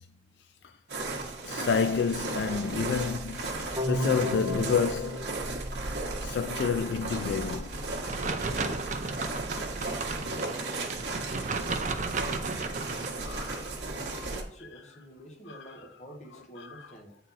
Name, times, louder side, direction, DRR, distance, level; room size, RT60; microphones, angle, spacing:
sound 1, 0.9-14.4, right 2 dB, 70° right, 1.4 m, -35 dB
voice 1, 1.4-5.3 6.2-7.8 11.1-11.4 13.3-13.7 14.1-14.3 15.5-15.6 16.6-16.8, left 6 dB, 70° left, 0.3 m, -30 dB
sound 2, 3.8-6.7, right 1 dB, 20° right, 0.9 m, -35 dB
sound 3, 8.1-13.1, right 4 dB, 40° right, 0.5 m, -34 dB
voice 2, 11.8-12.3 13.2-13.7 14.2-17.2, right 1 dB, 40° left, 1.2 m, -49 dB
8.5 x 4.2 x 4.1 m
head